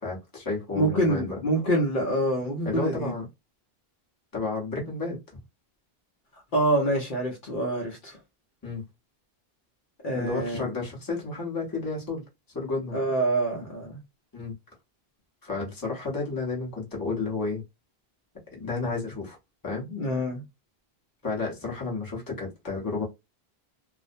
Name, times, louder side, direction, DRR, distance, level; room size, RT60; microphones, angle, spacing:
voice 1, 0.0-1.4 2.6-3.2 4.3-5.4 8.6-8.8 10.1-12.2 12.5-12.9 14.3-14.5 15.4-17.6 18.5-19.4 19.6-19.9 21.2-23.0, left 3 dB, 20° left, 0.8 m, -31 dB
voice 2, 0.7-3.1 6.3-8.2 10.0-10.6 12.9-14.0 19.9-20.4, right 1 dB, 60° left, 0.8 m, -26 dB
2.4 x 2.0 x 2.5 m
omnidirectional pair, 1.0 m